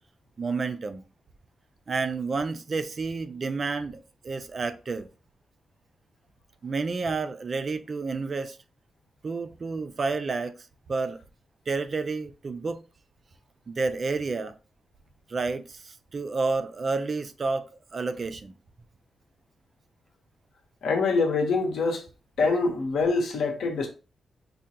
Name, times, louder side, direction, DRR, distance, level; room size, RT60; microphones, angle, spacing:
voice 1, 0.4-1.0 1.9-5.1 6.6-8.6 9.2-10.5 10.9-11.2 11.7-12.8 13.7-14.5 15.3-17.6 17.9-18.5, right 4 dB, 40° right, 0.3 m, -30 dB
voice 2, 20.8-22.0 22.4-23.9, left 4 dB, 85° left, 0.9 m, -25 dB
4.9 x 2.2 x 2.8 m
wide cardioid pair, 135°, 0 cm